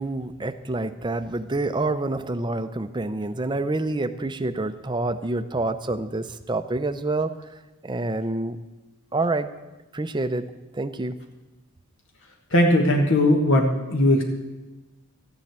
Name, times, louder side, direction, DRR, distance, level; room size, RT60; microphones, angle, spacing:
voice 1, 0.0-7.3 7.8-8.6 9.1-9.5 9.9-11.2, right 2 dB, 20° right, 10 dB, 0.6 m, -27 dB
voice 2, 12.5-14.2, left 1 dB, 55° left, 2 dB, 1.4 m, -19 dB
13.0 x 7.4 x 9.5 m, 1.1 s
head